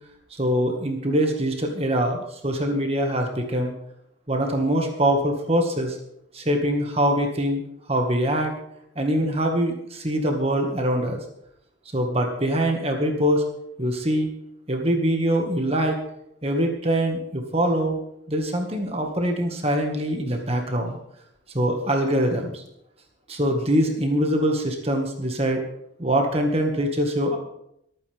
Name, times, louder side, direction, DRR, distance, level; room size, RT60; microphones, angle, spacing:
voice 1, 0.3-3.7 4.3-6.0 6.3-7.6 7.9-8.5 9.0-11.2 11.9-13.4 13.8-14.3 14.7-16.0 16.4-18.0 18.3-21.0 21.5-22.6 23.3-25.6 26.0-27.4, equal, 30° right, 3 dB, 1.8 m, -23 dB
23.5 x 9.1 x 3.6 m, 0.75 s
head